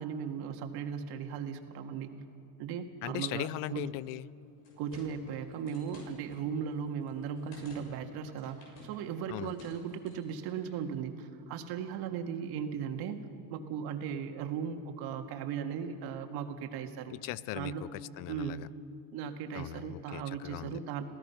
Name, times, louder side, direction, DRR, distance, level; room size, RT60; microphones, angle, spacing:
voice 1, 0.0-2.2 2.6-3.9 4.8-13.2 13.5-17.2 17.5-17.8 18.3-18.7 19.1-21.1, right 7 dB, 60° right, 5 dB, 1.9 m, -37 dB
voice 2, 3.0-4.3 9.3-9.5 17.1-18.7 19.5-20.8, left 17 dB, 50° left, 20 dB, 0.5 m, -39 dB
sound 1, 4.4-10.8, left 1 dB, 75° left, 7.3 m, -55 dB
27.0 x 17.0 x 5.8 m, 2.5 s
supercardioid pair, 115°, 43 cm